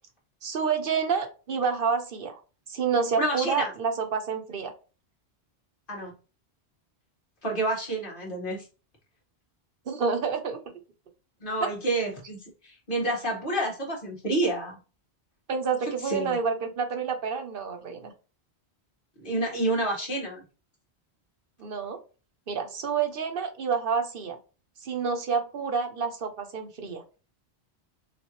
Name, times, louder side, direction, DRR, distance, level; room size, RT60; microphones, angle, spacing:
voice 1, 0.4-2.4 2.7-4.7 9.9-10.6 11.6-11.7 15.5-18.1 21.6-22.0 22.5-24.4 24.8-27.0, right 5 dB, 55° right, 6 dB, 1.0 m, -28 dB
voice 2, 3.2-3.7 5.9-6.1 7.4-8.6 11.4-12.4 12.6-14.7 16.0-16.4 19.2-20.4, right 1 dB, 50° left, -2 dB, 1.9 m, -29 dB
5.8 x 2.6 x 3.1 m, 0.33 s
omnidirectional pair, 1.1 m